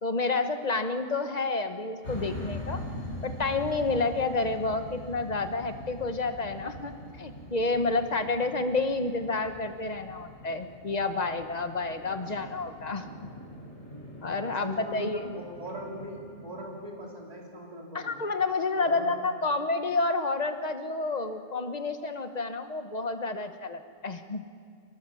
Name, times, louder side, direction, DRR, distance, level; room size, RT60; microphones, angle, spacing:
voice 1, 0.0-2.8 3.2-13.0 14.2-15.3 17.9-24.4, left 3 dB, 35° left, 8 dB, 1.1 m, -29 dB
sound 1, 2.0-16.8, left 1 dB, 70° left, 5.2 m, -43 dB
voice 2, 14.4-18.1 18.8-19.2, right 1 dB, 30° right, -2 dB, 3.8 m, -41 dB
23.5 x 19.0 x 7.1 m, 2.2 s
omnidirectional pair, 1.2 m